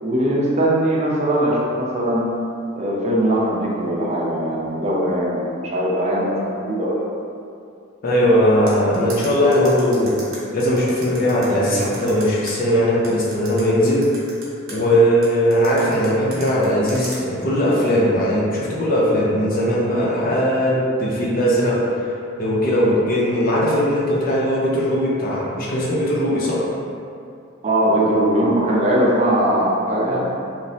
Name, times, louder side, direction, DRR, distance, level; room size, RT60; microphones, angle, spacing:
voice 1, 0.0-2.3 2.7-7.0 27.6-30.2, right 1 dB, 35° right, -5 dB, 0.5 m, -20 dB
voice 2, 8.0-10.2 10.5-14.1 14.7-22.0 22.4-26.6 30.1-30.2, equal, 45° left, -5 dB, 0.5 m, -19 dB
sound 1, 8.7-12.5 13.0-14.8 15.2-17.2, right 2 dB, 85° right, 0.8 m, -36 dB
3.1 x 2.0 x 2.7 m, 2.5 s
head